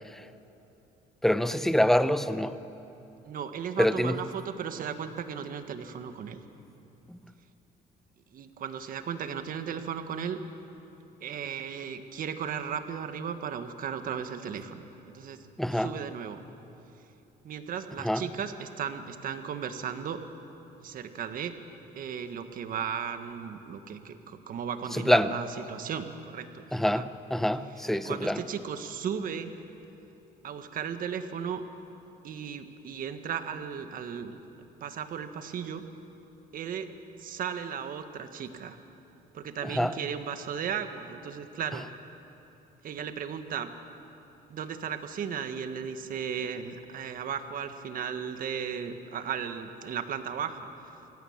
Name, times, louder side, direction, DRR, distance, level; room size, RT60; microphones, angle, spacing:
voice 1, 1.2-2.6 3.8-4.2 7.1-7.2 15.6-15.9 18.0-18.2 24.9-25.3 26.7-28.4 39.6-39.9, equal, ahead, 12 dB, 0.8 m, -26 dB
voice 2, 3.2-6.4 8.3-10.4 11.2-14.8 15.1-15.4 15.7-16.4 17.4-20.2 20.8-21.5 21.9-26.6 26.9-27.1 28.0-29.5 30.4-31.6 32.2-35.8 36.5-36.9 37.2-38.8 39.3-41.9 42.8-43.7 44.5-50.6, right 7 dB, 55° right, 8 dB, 1.6 m, -35 dB
26.0 x 17.5 x 7.4 m, 2.9 s
cardioid pair, 110°, 17 cm